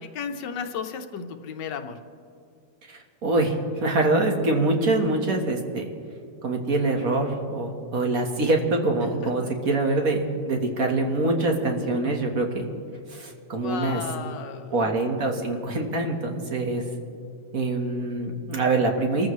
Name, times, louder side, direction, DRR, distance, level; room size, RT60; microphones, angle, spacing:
voice 1, 0.0-2.0 9.2-9.5 13.5-14.9, left 6 dB, 90° left, 7 dB, 1.5 m, -34 dB
voice 2, 2.9-5.9 6.4-12.6 13.1-14.0 14.7-16.8 17.5-19.3, right 2 dB, 55° right, 2 dB, 1.8 m, -24 dB
25.5 x 14.0 x 3.2 m, 2.3 s
omnidirectional pair, 1.8 m